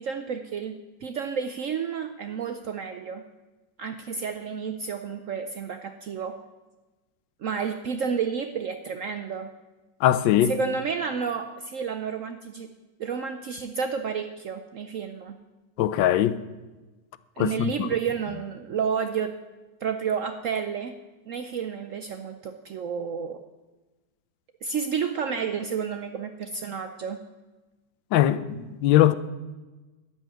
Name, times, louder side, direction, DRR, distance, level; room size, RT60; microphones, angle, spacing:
voice 1, 0.0-3.2 3.8-6.4 7.4-9.5 10.5-12.7 13.0-15.4 17.4-19.3 19.8-20.9 21.3-23.4 24.6-27.2, right 6 dB, 70° right, 0.7 m, -31 dB
voice 2, 10.0-10.5 15.8-16.4 17.4-17.9 28.1-29.1, left 12 dB, 90° left, 1.4 m, -21 dB
12.5 x 5.6 x 9.2 m
omnidirectional pair, 2.0 m